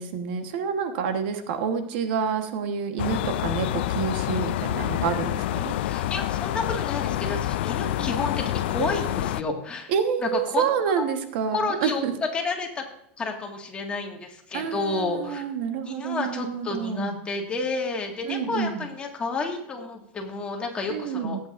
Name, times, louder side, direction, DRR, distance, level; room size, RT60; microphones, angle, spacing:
voice 1, 0.0-5.8 8.0-8.1 9.9-12.1 14.5-17.1 18.2-18.7 20.9-21.4, right 7 dB, 75° right, 7 dB, 1.2 m, -28 dB
sound 1, 3.0-9.4, left 14 dB, 85° left, 0.4 m, -27 dB
voice 2, 5.8-9.9 10.2-11.0 11.5-12.8 13.2-15.4 15.8-21.4, left 3 dB, 20° left, 1 dB, 1.8 m, -30 dB
18.0 x 8.6 x 2.6 m, 0.75 s
supercardioid pair, 150°, 6 cm